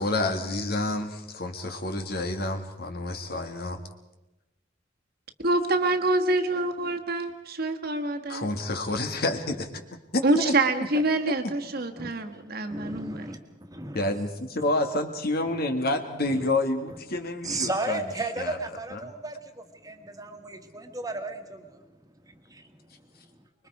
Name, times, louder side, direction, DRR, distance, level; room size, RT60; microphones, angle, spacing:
voice 1, 0.0-3.8 8.3-9.7 10.1-10.5 13.9-18.0 18.4-18.6 18.9-19.1, left 2 dB, 55° left, 6 dB, 1.9 m, -28 dB
voice 2, 5.4-8.5 10.2-13.3, right 2 dB, 55° right, 4 dB, 1.5 m, -26 dB
voice 3, 12.0-14.0 14.6-14.7 16.2-16.5 16.9-17.0 17.4-21.9 22.2-23.2, right 2 dB, 20° right, 6 dB, 1.7 m, -35 dB
25.0 x 22.0 x 4.8 m, 0.99 s
head